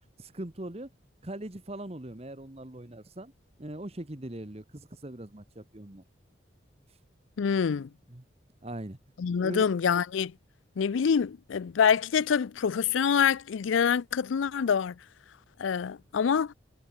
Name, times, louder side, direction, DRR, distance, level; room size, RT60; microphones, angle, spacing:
voice 1, 0.2-0.9 1.2-3.3 3.6-6.0 8.1-8.2 8.6-9.0 9.4-9.6, right 1 dB, 30° right, 1.3 m, -40 dB
voice 2, 7.4-7.9 9.2-10.3 10.8-14.9 15.6-16.5, left 7 dB, 90° left, 0.4 m, -26 dB
head